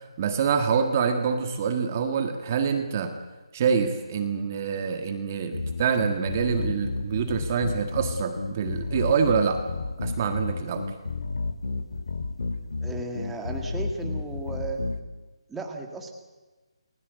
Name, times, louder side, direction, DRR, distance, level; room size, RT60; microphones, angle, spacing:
voice 1, 0.2-3.2 3.5-9.6 10.0-10.9, right 6 dB, 25° right, 6 dB, 1.6 m, -26 dB
sound 1, 5.5-15.0, left 3 dB, 75° left, 2.4 m, -31 dB
voice 2, 12.8-14.8 15.5-16.1, right 3 dB, 5° right, 2 dB, 1.9 m, -35 dB
29.5 x 20.5 x 8.3 m, 1.2 s
hypercardioid pair, 170°, 3 cm